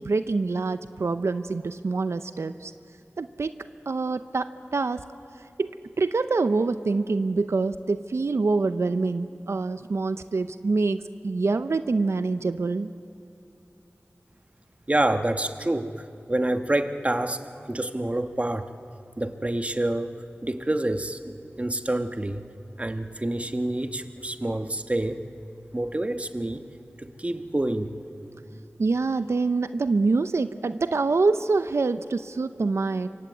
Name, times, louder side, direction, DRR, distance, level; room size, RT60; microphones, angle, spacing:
voice 1, 0.0-2.7 3.2-3.5 3.9-5.0 5.6-12.9 28.8-33.1, right 3 dB, 85° right, 11 dB, 0.6 m, -25 dB
voice 2, 14.9-17.4 17.7-18.7 19.2-22.4 22.8-25.2 25.7-26.6 27.0-28.0, right 1 dB, 30° right, 8 dB, 1.3 m, -27 dB
27.0 x 24.0 x 8.2 m, 2.6 s
wide cardioid pair, 55°, 5 cm